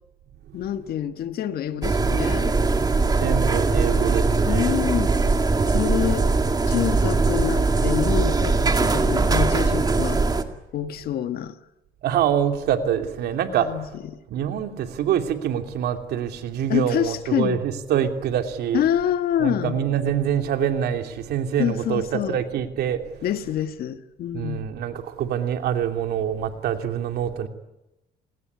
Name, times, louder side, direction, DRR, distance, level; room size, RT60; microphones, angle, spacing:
voice 1, 0.5-2.6 4.5-5.1 5.7-6.3 6.7-10.2 10.7-11.6 13.6-13.9 14.1-14.2 16.7-17.6 18.7-19.8 21.6-22.4 23.2-24.7, left 10 dB, 65° left, 1.7 m, -26 dB
sound 1, 1.8-10.4, right 3 dB, 25° right, 2.2 m, -21 dB
voice 2, 3.2-4.8 12.0-13.9 14.3-18.8 19.4-23.2 24.3-27.5, right 9 dB, 70° right, 3.0 m, -25 dB
29.0 x 19.5 x 9.7 m
cardioid pair, 110°, 17 cm